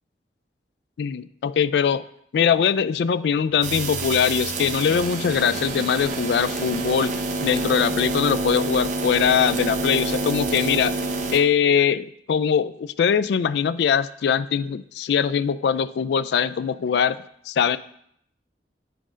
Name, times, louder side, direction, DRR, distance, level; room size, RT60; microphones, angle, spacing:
voice 1, 1.0-2.0 2.3-7.1 7.4-11.0 11.3-17.2 17.5-17.8, left 7 dB, 65° left, 16 dB, 0.3 m, -22 dB
sound 1, 3.5-10.0, left 1 dB, 20° left, 0.8 m, -45 dB
sound 2, 3.6-11.4, right 3 dB, 45° right, 0.7 m, -27 dB
7.6 x 3.7 x 5.0 m, 0.69 s
head